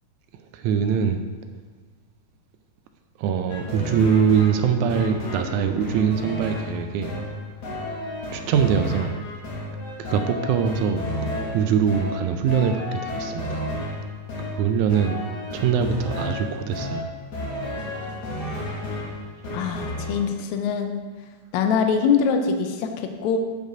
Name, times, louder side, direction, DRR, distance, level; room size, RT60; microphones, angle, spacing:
voice 1, 0.5-1.2 3.2-7.2 8.3-9.2 10.0-13.7 14.4-15.2 15.5-17.1, right 7 dB, 80° right, 7 dB, 1.8 m, -23 dB
sound 1, 3.5-20.3, left 1 dB, 55° left, 1.1 m, -32 dB
voice 2, 19.5-21.0 21.5-23.4, left 6 dB, 75° left, 5 dB, 1.8 m, -23 dB
7.9 x 5.2 x 5.0 m, 1.5 s
omnidirectional pair, 3.7 m